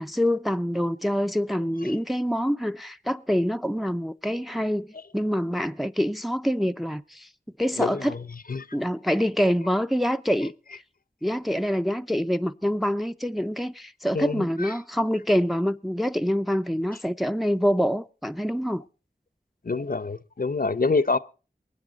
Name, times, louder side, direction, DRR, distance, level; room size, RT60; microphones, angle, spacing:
voice 1, 0.0-7.3 7.6-8.1 8.7-10.5 11.2-18.8, equal, ahead, 0.6 m, -26 dB
voice 2, 7.8-8.2 8.5-8.7 14.1-14.7 19.6-21.2, left 3 dB, 60° left, 0.7 m, -26 dB
23.0 x 9.7 x 4.0 m
wide cardioid pair, 45°, 17 cm